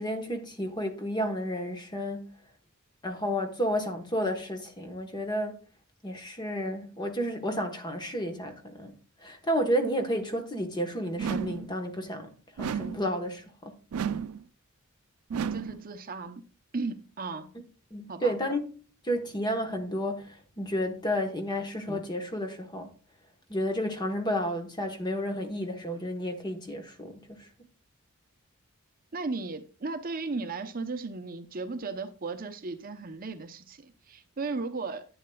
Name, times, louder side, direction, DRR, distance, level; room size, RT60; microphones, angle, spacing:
voice 1, 0.0-2.3 3.0-5.6 6.0-8.9 9.2-12.3 12.6-13.8 17.9-18.7 19.0-22.9 23.5-27.5, equal, 20° left, 1.1 m, -31 dB
sound 1, 11.2-11.7 12.6-13.1 13.9-14.4 15.3-15.8, right 7 dB, 85° right, 0.4 m, -32 dB
voice 2, 15.5-16.4 16.7-17.5 18.1-18.4 29.1-35.1, right 3 dB, 40° right, 0.7 m, -35 dB
11.0 x 8.5 x 2.3 m
head